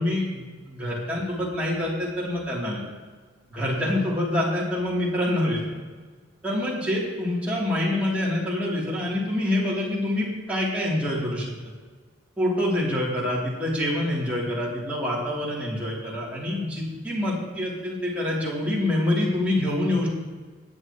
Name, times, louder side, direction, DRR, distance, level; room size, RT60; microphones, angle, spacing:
voice 1, 0.0-2.8 3.5-5.8 6.4-11.5 12.4-20.1, left 1 dB, 5° right, -7 dB, 3.1 m, -26 dB
17.0 x 10.0 x 3.1 m, 1.4 s
head